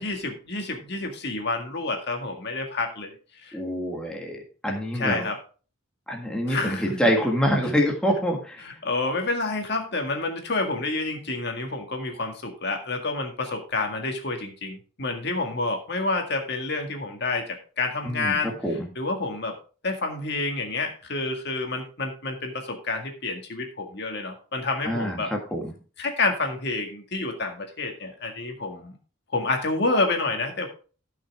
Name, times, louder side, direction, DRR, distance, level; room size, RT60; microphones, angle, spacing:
voice 1, 0.0-3.6 5.0-5.4 6.5-6.9 8.6-18.5 19.0-19.5 19.8-25.3 26.0-29.0 29.3-30.7, left 3 dB, 55° left, 3 dB, 1.9 m, -29 dB
voice 2, 3.5-5.2 6.1-8.6 18.0-18.4 18.6-18.9 24.8-25.7, equal, 5° left, 0 dB, 1.7 m, -26 dB
14.0 x 5.9 x 3.5 m, 0.37 s
head